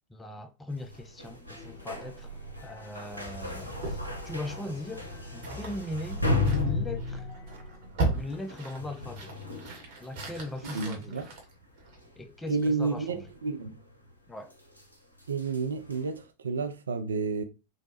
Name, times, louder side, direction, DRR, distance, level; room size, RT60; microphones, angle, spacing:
voice 1, 0.1-4.0 4.2-7.3 8.1-9.3 10.0-11.3 12.2-13.3 14.3-14.5, left 2 dB, 10° left, 0.3 m, -39 dB
sound 1, 0.7-11.0 11.4-11.6 11.9-16.2, left 2 dB, 90° left, 0.6 m, -36 dB
sound 2, 1.5-8.2, right 1 dB, 45° left, 1.7 m, -48 dB
sound 3, 3.8-12.2, right 3 dB, 45° right, 0.9 m, -38 dB
voice 2, 10.7-11.3 12.5-13.8 15.3-17.4, right 4 dB, 70° right, 0.3 m, -30 dB
3.0 x 2.0 x 2.8 m
figure-of-eight pair, 90°, 0 cm